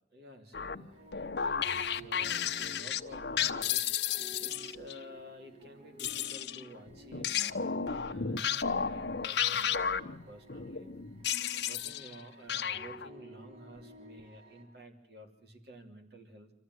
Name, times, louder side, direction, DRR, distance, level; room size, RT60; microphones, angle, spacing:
voice 1, 0.1-10.9 11.7-16.5, equal, 60° right, 4 dB, 3.1 m, -52 dB
sound 1, 0.5-5.0 6.0-12.2 12.5-13.1, left 7 dB, 70° left, 1.0 m, -33 dB
sound 2, 0.9-14.6, right 2 dB, 40° right, 7.1 m, -53 dB
27.0 x 14.5 x 9.6 m, 0.79 s
head